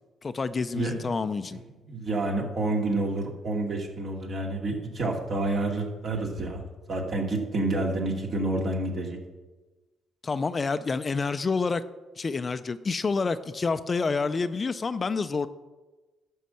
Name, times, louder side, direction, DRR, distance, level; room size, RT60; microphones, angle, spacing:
voice 1, 0.2-1.6 10.2-11.8 12.2-15.5, left 4 dB, 35° left, 12 dB, 0.5 m, -28 dB
voice 2, 0.7-1.1 1.5-1.6 1.9-6.6 6.9-9.2, right 2 dB, 50° right, 1 dB, 2.4 m, -29 dB
11.5 x 5.5 x 7.6 m, 1.2 s
cardioid pair, 90°, 0 cm